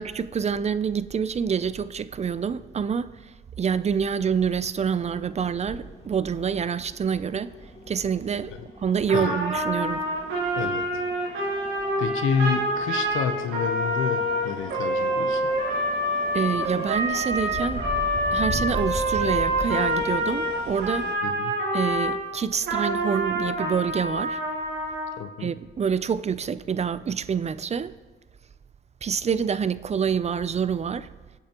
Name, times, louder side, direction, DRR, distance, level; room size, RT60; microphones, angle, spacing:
voice 1, 0.0-3.1 3.6-7.5 7.9-8.5 8.8-10.0 16.3-17.9 18.3-21.1 21.7-24.4 25.4-27.9 29.0-31.1, right 7 dB, 35° right, 0.5 m, -27 dB
sound 1, 4.8-21.1, left 1 dB, 25° left, 2.1 m, -39 dB
Trumpet, 9.1-22.2 22.6-25.2, right 1 dB, 80° right, 3.3 m, -27 dB
voice 2, 10.6-11.0 12.0-15.5 21.2-21.5 25.2-25.5, left 7 dB, 80° left, 0.9 m, -29 dB
23.0 x 8.4 x 3.0 m
cardioid pair, 90°, 20 cm